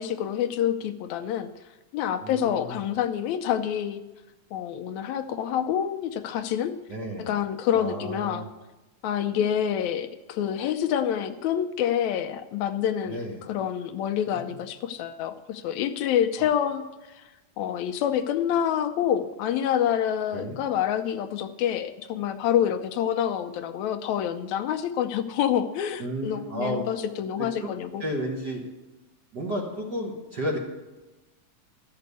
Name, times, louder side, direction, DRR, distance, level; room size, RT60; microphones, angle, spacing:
voice 1, 0.0-1.5 1.9-4.0 4.5-6.7 7.2-8.5 9.0-13.2 13.5-17.2 17.6-28.0, left 9 dB, 80° left, 8 dB, 1.8 m, -27 dB
voice 2, 2.2-2.8 6.9-7.3 7.7-8.5 13.0-13.4 14.3-14.6 20.3-20.6 26.0-26.8 27.4-27.7 28.0-28.6 29.3-30.6, equal, 50° right, -1 dB, 1.3 m, -32 dB
12.5 x 6.8 x 8.2 m, 1.1 s
omnidirectional pair, 3.4 m